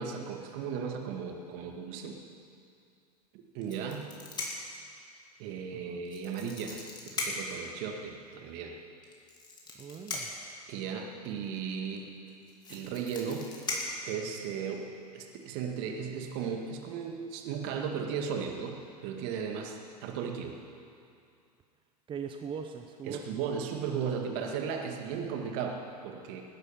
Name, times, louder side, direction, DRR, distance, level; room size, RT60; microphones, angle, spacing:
voice 1, 0.0-2.2 3.3-4.1 5.4-8.8 10.7-12.1 12.7-13.5 14.1-20.6 23.1-26.4, right 6 dB, 50° right, 3 dB, 2.1 m, -36 dB
sound 1, 3.6-4.8 6.0-7.6 9.0-10.5 11.9-12.0 12.3-14.7 15.5-15.8 16.1-16.3, left 3 dB, 20° left, 3.1 m, -38 dB
voice 2, 5.7-6.0 9.7-10.3 22.1-23.4, right 6 dB, 25° right, 5 dB, 0.9 m, -40 dB
19.5 x 10.5 x 5.9 m, 2.4 s
figure-of-eight pair, 85°, 20 cm